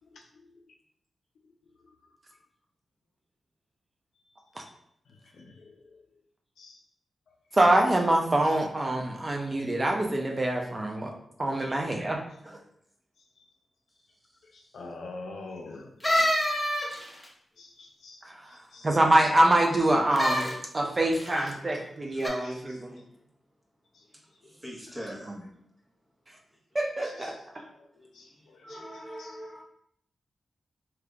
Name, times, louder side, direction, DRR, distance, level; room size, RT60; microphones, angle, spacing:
voice 1, 5.4-5.7 6.6-6.8 11.6-11.8 14.7-15.9 16.6-16.7 17.6-18.2 18.7-18.9 22.4-22.6 27.0-27.3 27.6-27.8 28.1-28.8 29.2-29.3, left 3 dB, 80° left, 1 dB, 0.5 m, -44 dB
voice 2, 7.5-11.1 11.4-12.2 18.8-23.0 25.3-25.4 26.7-27.3, right 1 dB, 40° right, 1 dB, 0.6 m, -25 dB
sound 1, 16.0-17.2 20.1-20.5 21.1-21.5 22.2-22.3, equal, 15° left, 1.1 m, -26 dB
voice 3, 24.4-25.3 28.2-28.3 28.6-29.6, equal, 20° right, -4 dB, 1.3 m, -42 dB
3.4 x 3.0 x 2.4 m, 0.69 s
supercardioid pair, 40°, 0 cm